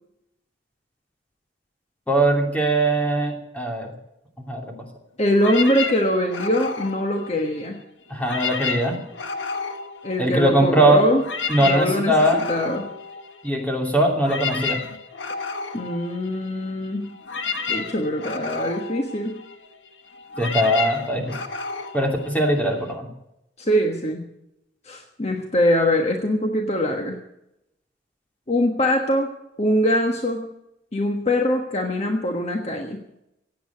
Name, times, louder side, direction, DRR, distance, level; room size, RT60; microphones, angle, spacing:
voice 1, 2.1-3.9 4.4-4.8 8.1-9.0 10.2-11.0 11.5-12.4 13.4-14.8 20.4-21.2 21.9-23.1, right 1 dB, 10° left, 1 dB, 2.8 m, -20 dB
voice 2, 5.2-7.8 10.0-11.2 11.6-12.9 15.7-17.2 17.7-19.4 23.6-24.3 24.8-27.2 28.5-29.3 29.6-30.5 30.9-33.0, left 1 dB, 35° left, 3 dB, 1.4 m, -23 dB
sound 1, 5.4-7.8 8.1-10.7 11.0-22.9, left 5 dB, 85° left, 1.4 m, -32 dB
16.5 x 8.7 x 8.4 m, 0.84 s
head